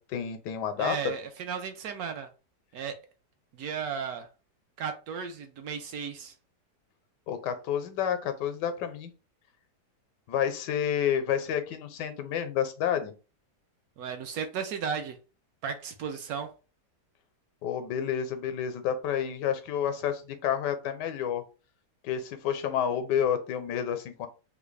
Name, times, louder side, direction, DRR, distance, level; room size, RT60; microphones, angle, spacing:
voice 1, 0.0-1.1 7.3-9.1 10.3-13.1 17.6-21.4 22.0-24.3, left 9 dB, 90° left, 1.2 m, -29 dB
voice 2, 0.8-2.3 2.7-3.0 3.5-4.3 4.8-6.3 14.0-15.2 15.6-16.5, right 7 dB, 70° right, 1.0 m, -35 dB
3.5 x 2.2 x 3.2 m
omnidirectional pair, 1.8 m